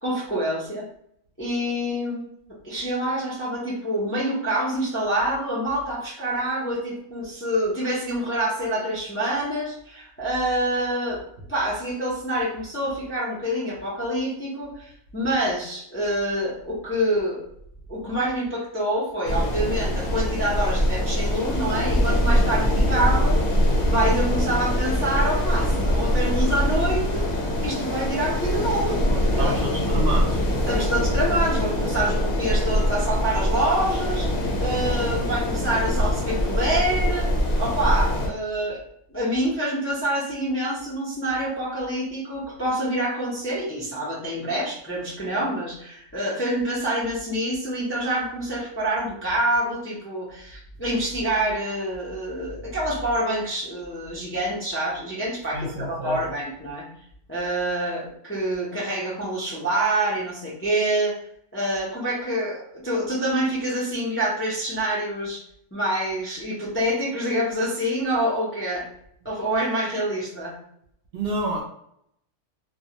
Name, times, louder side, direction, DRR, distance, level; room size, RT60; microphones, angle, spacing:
voice 1, 0.0-0.9 1.4-2.3 2.6-11.2 11.5-17.4 17.9-23.4 23.8-27.2 27.6-29.6 30.7-34.3 34.6-37.3 37.6-56.9 57.3-61.2 61.5-65.4 65.7-68.8 69.2-70.5, right 1 dB, 20° left, -7 dB, 0.4 m, -26 dB
sound 1, 19.3-38.3, equal, 60° left, 0.8 m, -23 dB
voice 2, 29.4-30.5 55.5-56.2 71.1-71.6, right 1 dB, 65° right, -1 dB, 0.7 m, -28 dB
2.2 x 2.0 x 2.7 m, 0.71 s
omnidirectional pair, 1.2 m